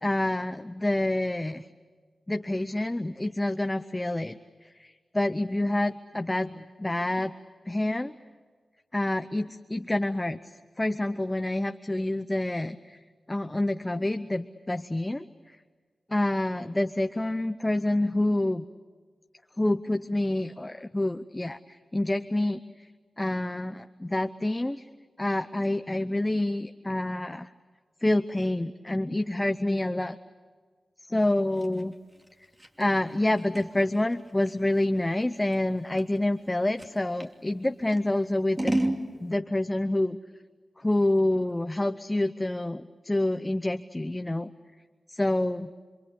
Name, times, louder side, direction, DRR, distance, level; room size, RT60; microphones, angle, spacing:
voice 1, 0.0-1.7 2.3-4.4 4.8-7.3 7.7-8.1 8.9-10.4 10.8-13.0 13.3-15.3 16.1-18.6 19.6-22.6 23.2-24.8 25.2-27.5 28.0-30.2 31.1-31.9 32.8-38.7 39.2-40.2 40.8-44.5 45.1-45.7, left 1 dB, 20° left, 9 dB, 0.8 m, -27 dB
Scissors, 31.2-37.4 37.9-39.0, right 1 dB, 25° right, 2.7 m, -34 dB
27.5 x 24.0 x 8.5 m, 1.5 s
cardioid pair, 40°, 0 cm